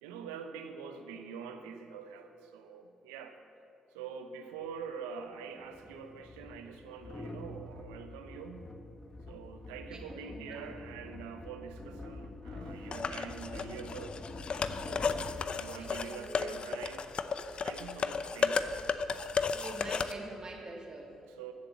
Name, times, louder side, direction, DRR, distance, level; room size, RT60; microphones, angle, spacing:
voice 1, 0.0-3.4 3.9-8.7 9.3-14.2 14.9-18.9 19.8-19.9 21.3-21.5, right 6 dB, 85° right, 7 dB, 0.9 m, -45 dB
Water jug twirling, 4.6-4.7 5.7-16.3, left 2 dB, 30° left, 1.3 m, -46 dB
voice 2, 9.9-10.6 15.7-16.5 19.5-21.1, right 2 dB, 35° right, 1 dB, 2.8 m, -45 dB
sound 1, 12.9-20.1, left 5 dB, 50° left, 0.7 m, -34 dB
14.5 x 7.7 x 7.2 m, 2.7 s
hypercardioid pair, 45°, 2 cm